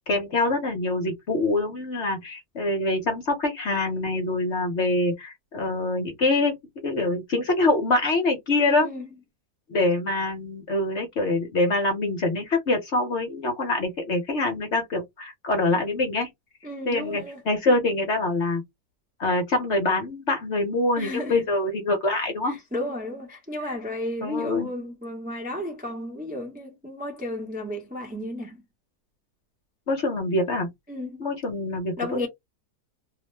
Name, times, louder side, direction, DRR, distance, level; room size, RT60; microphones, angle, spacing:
voice 1, 0.1-6.6 6.8-8.9 9.7-16.3 16.9-18.6 19.2-22.6 23.6-23.8 24.2-24.7 29.9-30.7 31.2-32.3, left 2 dB, 50° left, 0.9 m, -25 dB
voice 2, 8.6-9.1 16.6-17.4 21.0-21.4 22.5-28.6 30.9-31.3 32.0-32.3, left 1 dB, 10° right, 0.5 m, -33 dB
2.8 x 2.1 x 3.2 m
omnidirectional pair, 1.8 m